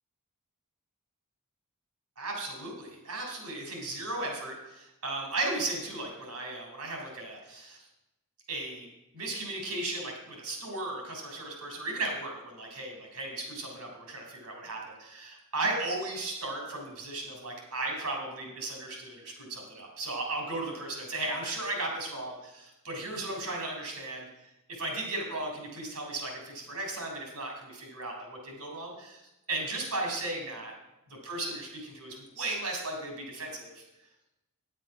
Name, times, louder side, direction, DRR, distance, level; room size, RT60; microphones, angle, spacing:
voice 1, 2.2-7.8 8.5-8.9 9.1-24.3 24.7-29.2 29.5-30.7 31.1-33.8, right 2 dB, 80° right, 1 dB, 3.6 m, -36 dB
9.4 x 7.4 x 6.0 m, 0.95 s
head